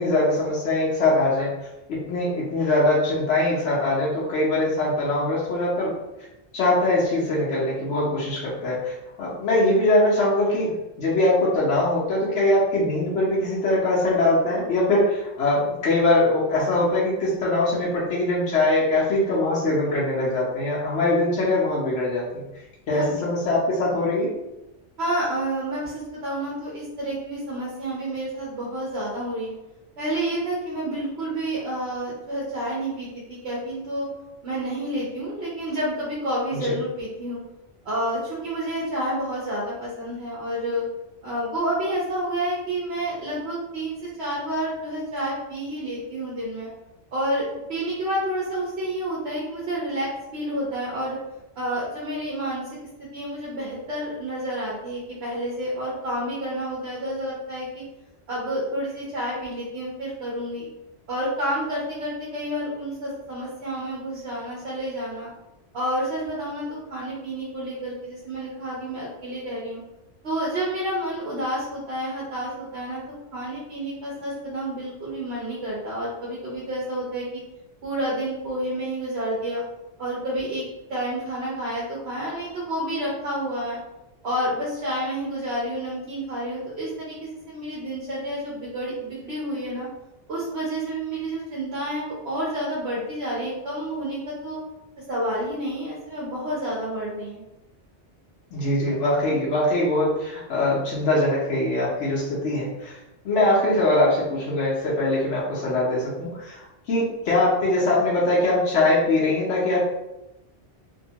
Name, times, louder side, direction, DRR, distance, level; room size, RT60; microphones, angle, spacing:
voice 1, 0.0-1.5 1.9-5.9 6.5-22.4 22.9-24.3 36.6-36.7 98.5-103.0 103.2-106.6 106.9-109.9, left 2 dB, 85° left, -6 dB, 1.0 m, -22 dB
voice 2, 25.0-29.5 30.0-34.1 34.4-37.4 37.8-40.8 41.2-46.7 47.1-47.4 47.7-51.2 51.6-52.7 53.0-57.8 58.3-60.7 61.1-65.3 65.7-69.8 70.2-73.0 73.3-77.4 77.8-79.6 80.0-80.6 80.9-83.8 84.2-89.9 90.3-94.6 95.1-97.4, right 1 dB, 65° right, -6 dB, 1.0 m, -29 dB
2.8 x 2.2 x 2.7 m, 0.94 s
omnidirectional pair, 1.2 m